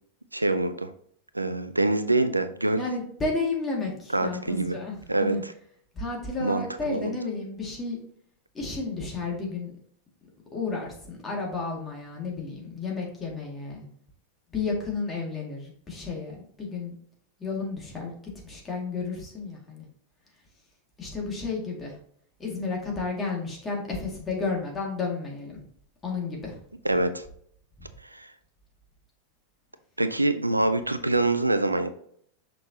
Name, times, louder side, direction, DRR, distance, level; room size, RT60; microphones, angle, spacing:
voice 1, 0.3-0.9 1.3-2.9 4.1-4.8 5.1-5.5 6.4-7.2 26.8-27.3 28.0-28.3 30.0-31.9, right 2 dB, 85° right, 11 dB, 0.4 m, -25 dB
voice 2, 2.8-5.4 5.9-8.0 8.5-9.7 10.5-13.9 14.5-16.9 17.4-19.9 21.0-22.0 22.4-25.6 26.0-26.6, left 4 dB, 20° left, -1 dB, 2.1 m, -32 dB
6.3 x 5.2 x 2.8 m, 0.64 s
figure-of-eight pair, 90°, 0 cm